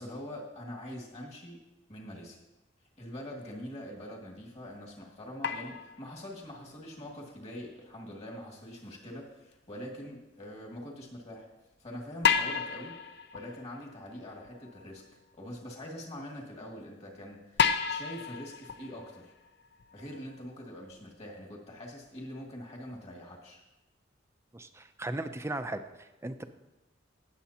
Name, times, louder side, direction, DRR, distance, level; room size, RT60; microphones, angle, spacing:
voice 1, 0.0-1.6 1.9-2.4 3.0-11.5 11.8-13.0 13.3-15.0 15.4-19.3 19.9-23.6, left 1 dB, 35° left, -1 dB, 2.2 m, -44 dB
sound 1, 4.6-4.7 5.4-6.6 9.5-9.6 12.2-15.1 15.6-15.7 16.7-16.8 17.6-20.4 20.9-21.0 22.0-22.1, left 6 dB, 65° left, 0.6 m, -32 dB
voice 2, 24.5-26.4, right 2 dB, 15° right, 9 dB, 0.5 m, -37 dB
17.5 x 7.5 x 2.9 m, 1.0 s
head